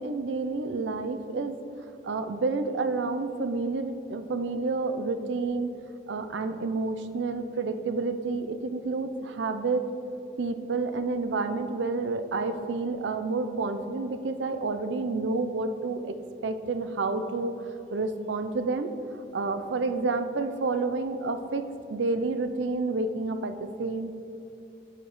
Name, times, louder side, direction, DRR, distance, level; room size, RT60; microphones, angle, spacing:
voice 1, 0.0-1.6 2.0-5.7 6.1-9.9 10.4-16.2 16.4-17.5 17.9-18.9 19.3-24.1, right 3 dB, 90° right, 9 dB, 0.5 m, -29 dB
12.0 x 5.0 x 3.1 m, 2.7 s
head